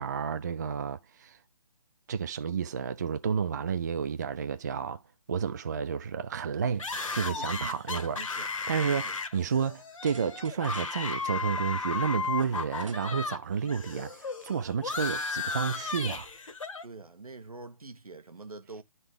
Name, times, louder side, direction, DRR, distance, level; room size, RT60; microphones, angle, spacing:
voice 1, 0.0-1.4 2.1-5.0 5.3-6.9 7.1-8.2 8.7-16.3, right 6 dB, 30° right, 0.4 m, -31 dB
sound 1, 6.8-13.4 13.7-16.8, left 4 dB, 60° left, 1.3 m, -35 dB
voice 2, 7.4-7.8 8.1-8.5 9.0-9.2 16.8-18.8, right 3 dB, 75° right, 1.3 m, -45 dB
sound 2, 10.1-11.3 12.7-13.5 13.8-13.9 14.9-15.8, right 5 dB, 60° right, 1.1 m, -51 dB
11.5 x 4.1 x 3.4 m
figure-of-eight pair, 145°, 19 cm